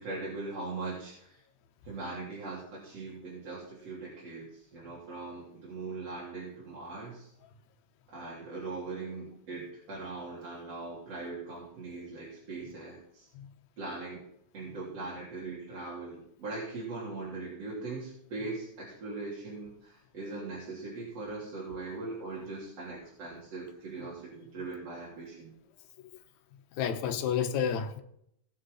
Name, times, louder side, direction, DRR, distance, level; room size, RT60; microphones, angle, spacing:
voice 1, 0.0-1.4 1.9-7.3 8.1-13.3 13.8-14.2 14.5-25.5, right 3 dB, 55° right, 4.3 m, -40 dB
voice 2, 26.8-28.0, left 8 dB, 70° left, 2.3 m, -30 dB
19.0 x 6.6 x 5.6 m
omnidirectional pair, 3.5 m